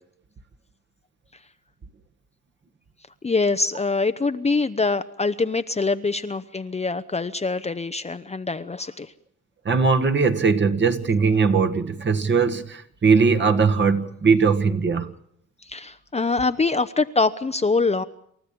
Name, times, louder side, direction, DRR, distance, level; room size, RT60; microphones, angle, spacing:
voice 1, 3.2-9.1 15.6-18.0, left 3 dB, 20° left, 10 dB, 0.8 m, -24 dB
voice 2, 9.7-15.1, right 5 dB, 40° right, 8 dB, 1.8 m, -20 dB
28.0 x 13.5 x 8.6 m, 0.71 s
cardioid pair, 90°, 30 cm